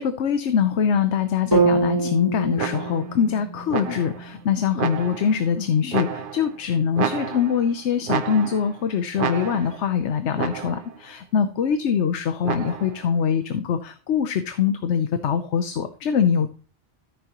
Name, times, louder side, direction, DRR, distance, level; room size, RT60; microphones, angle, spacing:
voice 1, 0.0-16.5, left 7 dB, 85° left, 9 dB, 1.1 m, -23 dB
sound 1, 1.5-5.6, right 3 dB, 20° right, 5.3 m, -26 dB
sound 2, 2.6-3.2 3.7-4.3 4.8-5.4 5.9-6.6 7.0-7.7 8.1-8.8 9.2-9.9 10.4-11.0 12.4-13.1, right 7 dB, 55° right, 0.8 m, -30 dB
13.5 x 7.4 x 3.0 m, 0.39 s
omnidirectional pair, 1.1 m